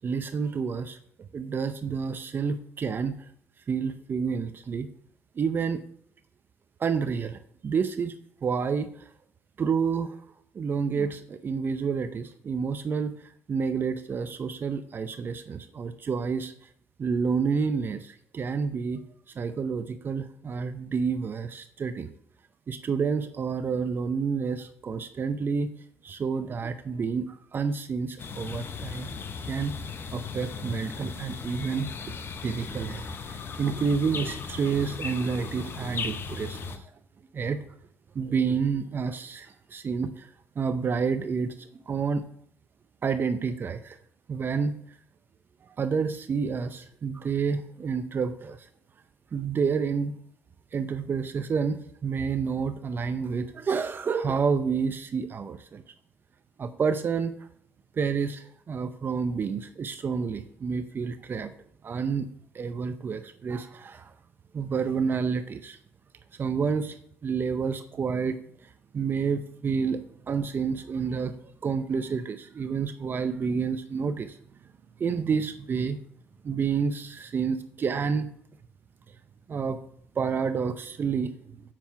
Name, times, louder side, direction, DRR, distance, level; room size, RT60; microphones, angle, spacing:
voice 1, 0.0-1.0 1.3-3.2 3.7-4.9 5.4-5.8 6.8-8.1 8.4-9.1 9.6-10.2 10.5-16.7 17.0-19.0 19.4-22.1 22.7-25.7 26.0-29.1 29.5-29.7 30.1-31.9 32.4-36.9 37.3-37.6 38.1-40.3 40.6-42.2 43.0-44.0 44.3-44.8 45.8-48.7 49.3-50.1 50.7-55.8 56.6-57.3 58.0-61.5 61.8-62.3 62.5-64.1 64.5-65.8 66.4-67.0 67.2-74.4 75.0-76.0 76.4-78.3 79.5-79.8 80.2-81.3, right 5 dB, 40° right, 10 dB, 0.5 m, -29 dB
sound 1, 28.2-36.8, left 5 dB, 45° left, 0.8 m, -37 dB
7.5 x 5.9 x 5.7 m, 0.66 s
cardioid pair, 85°, 5 cm